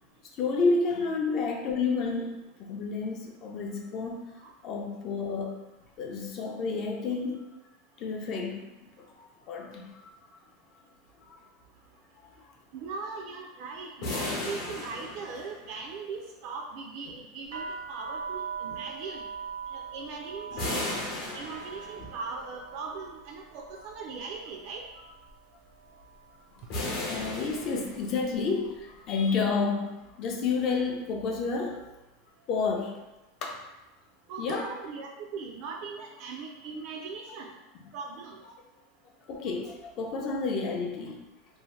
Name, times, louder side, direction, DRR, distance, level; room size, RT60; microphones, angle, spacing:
voice 1, 0.4-4.2 4.6-5.6 6.0-7.5 8.0-8.7 9.0-10.3 11.2-11.4 12.2-12.3 22.0-22.1 27.1-31.8 32.5-33.0 33.4-33.6 34.4-34.7 39.3-41.2, left 4 dB, 40° left, 2 dB, 0.4 m, -30 dB
voice 2, 12.7-19.3 19.7-20.8 21.1-24.8 34.3-37.6 37.9-38.4, right 4 dB, 50° right, 1 dB, 0.3 m, -40 dB
sound 1, 14.0-15.9 20.6-22.2 26.7-28.4, left 2 dB, 55° left, 0.8 m, -35 dB
sound 2, 17.5-25.4 25.7-26.3 26.9-27.2 27.5-29.0, right 6 dB, 90° right, 0.6 m, -42 dB
2.7 x 2.0 x 3.0 m, 0.99 s
supercardioid pair, 145°, 0 cm